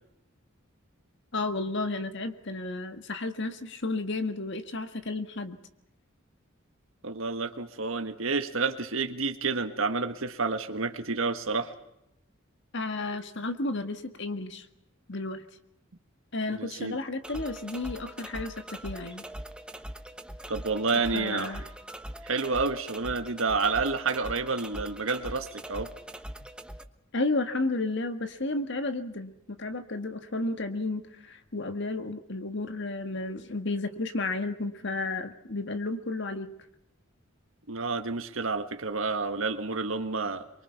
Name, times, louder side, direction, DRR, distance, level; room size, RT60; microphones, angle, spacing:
voice 1, 1.3-5.6 12.7-14.7 15.1-15.4 16.3-19.2 21.1-21.6 27.1-36.5, left 2 dB, 60° left, 8 dB, 1.7 m, -32 dB
voice 2, 7.0-11.7 16.5-17.0 20.5-21.6 22.2-25.9 37.7-40.5, right 4 dB, 80° right, 7 dB, 1.6 m, -29 dB
sound 1, 17.2-26.8, right 1 dB, 5° right, 1.0 m, -42 dB
24.0 x 24.0 x 5.8 m, 0.82 s
head